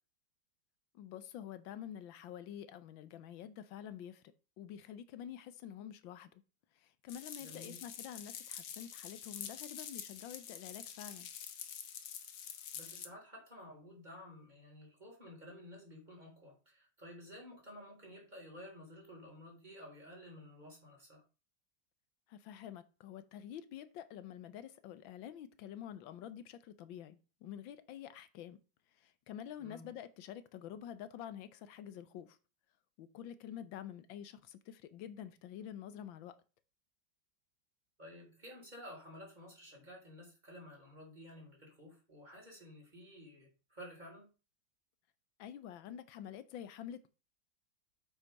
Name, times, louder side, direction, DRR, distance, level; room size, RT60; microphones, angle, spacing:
voice 1, 0.9-4.2 4.6-6.4 6.8-11.3 22.3-28.6 29.0-32.4 33.0-36.3 45.4-47.1, left 10 dB, 90° left, 1.5 m, -48 dB
sound 1, 7.1-13.1, left 8 dB, 70° left, 1.7 m, -47 dB
voice 2, 7.4-7.8 12.7-21.2 29.6-29.9 38.0-44.3, left 1 dB, 20° right, 4.1 m, -53 dB
8.1 x 6.1 x 5.2 m
omnidirectional pair, 2.1 m